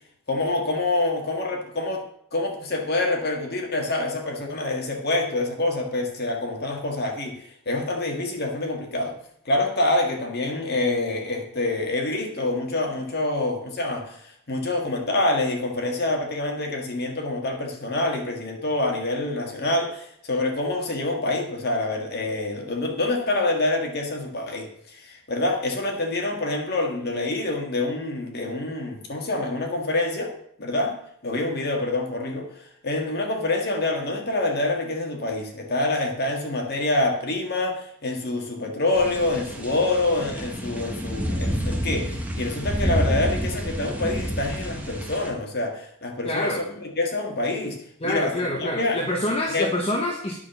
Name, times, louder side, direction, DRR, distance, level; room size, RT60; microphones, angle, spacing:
voice 1, 0.3-2.0 2.3-9.1 9.4-30.3 30.6-31.0 31.2-47.8 48.0-48.3 48.6-49.0 49.5-49.7, left 2 dB, 45° left, 2 dB, 1.8 m, -26 dB
sound 1, 38.9-45.3, equal, 5° right, 1.3 m, -29 dB
voice 2, 46.2-46.6 48.0-50.3, left 1 dB, 25° left, 1 dB, 1.1 m, -26 dB
9.8 x 6.0 x 6.9 m, 0.68 s
head